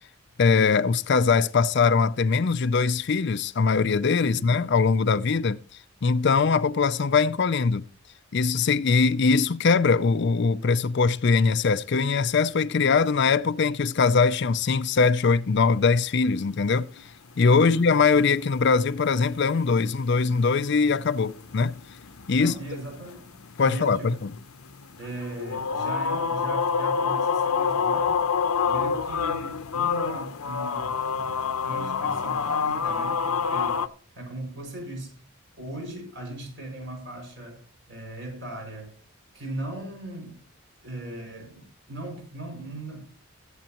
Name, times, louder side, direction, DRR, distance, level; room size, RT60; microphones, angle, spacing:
voice 1, 0.4-5.6 6.0-7.8 8.3-16.9 17.4-21.8 22.3-22.5 23.6-24.3, left 4 dB, 50° left, 0.4 m, -22 dB
voice 2, 4.2-4.6 17.6-17.8 22.4-23.3 23.6-24.3 25.0-28.3 28.6-33.9 34.1-35.1 35.6-38.9 39.3-40.4 40.8-43.0, right 1 dB, 55° right, 6.1 m, -38 dB
sound 1, 16.8-17.0 17.4-17.5 17.7-33.9, left 6 dB, 80° left, 0.8 m, -28 dB
21.0 x 8.0 x 3.0 m
head